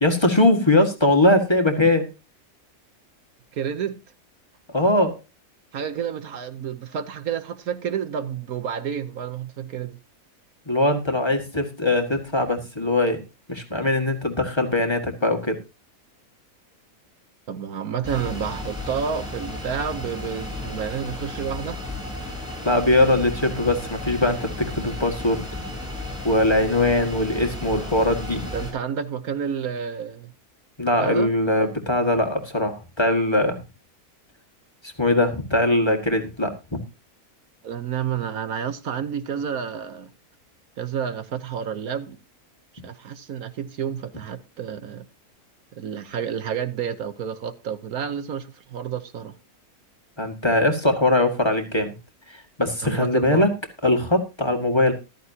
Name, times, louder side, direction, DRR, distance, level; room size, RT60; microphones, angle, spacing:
voice 1, 0.0-2.1 4.7-5.2 10.7-13.2 13.5-15.6 22.6-25.4 26.2-28.4 30.8-33.6 35.0-36.5 50.2-51.9 52.3-53.5 53.8-54.9, left 1 dB, 20° left, 1.8 m, -21 dB
voice 2, 3.6-4.0 5.7-10.0 17.5-21.8 28.5-30.3 31.0-31.3 37.6-40.1 40.8-42.2 42.8-45.0 45.8-49.3 52.8-53.5, right 8 dB, 70° right, 1.4 m, -30 dB
sound 1, 18.0-28.7, left 2 dB, 5° right, 7.5 m, -34 dB
14.0 x 13.5 x 2.8 m
omnidirectional pair, 1.6 m